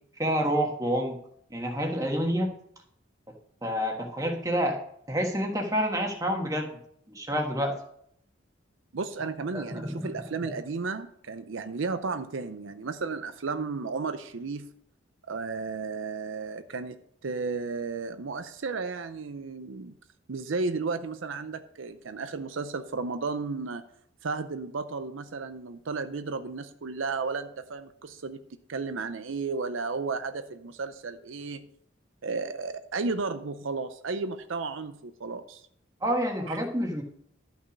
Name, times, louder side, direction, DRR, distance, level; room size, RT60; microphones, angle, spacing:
voice 1, 0.2-1.2 1.5-2.5 3.6-4.8 5.1-6.7 7.1-7.7 9.5-10.1 10.4-10.6 36.0-37.0, equal, 15° right, 2 dB, 1.4 m, -28 dB
voice 2, 8.9-14.7 15.3-19.9 20.3-23.8 24.2-28.4 28.7-31.6 32.2-35.6 36.5-36.6, right 4 dB, 75° right, 10 dB, 0.6 m, -33 dB
12.5 x 5.7 x 5.2 m, 0.68 s
head